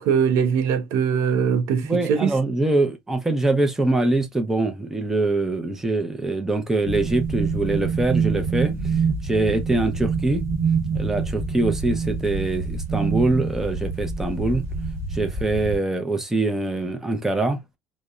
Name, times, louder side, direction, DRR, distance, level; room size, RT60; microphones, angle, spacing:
voice 1, 0.0-2.3, right 7 dB, 80° right, 0.5 m, -21 dB
voice 2, 1.8-8.9 9.2-10.4 10.9-14.6 15.1-17.6, right 2 dB, 10° right, 0.5 m, -23 dB
sound 1, 6.8-15.8, right 5 dB, 50° right, 1.0 m, -26 dB
2.7 x 2.1 x 2.2 m
cardioid pair, 120°, 5 cm